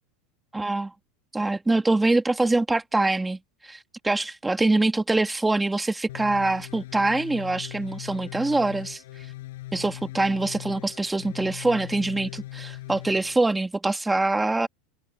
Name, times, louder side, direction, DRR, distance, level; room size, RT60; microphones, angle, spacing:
voice 1, 0.5-0.9 1.3-9.0 9.7-14.7, right 2 dB, 10° right, 2.0 m, -24 dB
sound 1, 6.1-13.4, left 17 dB, 80° left, 6.3 m, -40 dB
supercardioid pair, 120°, 0 cm